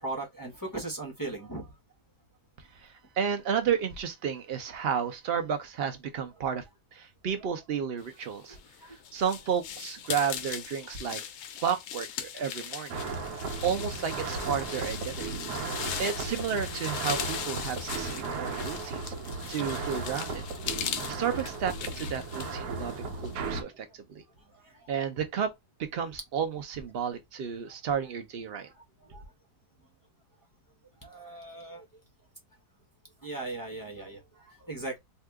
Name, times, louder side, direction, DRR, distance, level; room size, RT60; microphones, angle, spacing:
voice 1, 0.0-1.7 8.5-9.0 23.7-23.8 24.5-24.9 29.1-29.2 31.0-31.8 33.2-35.0, right 2 dB, 30° left, 0.4 m, -38 dB
voice 2, 2.6-6.6 6.9-8.6 8.8-11.2 11.6-13.0 13.6-15.4 16.0-19.1 19.5-20.5 20.8-24.2 24.9-25.5 25.9-28.7, right 7 dB, 60° right, 0.6 m, -32 dB
sound 1, 8.4-23.6, left 9 dB, 70° left, 0.8 m, -39 dB
sound 2, 12.9-23.6, right 4 dB, 80° right, 1.2 m, -36 dB
2.8 x 2.4 x 3.4 m
omnidirectional pair, 1.7 m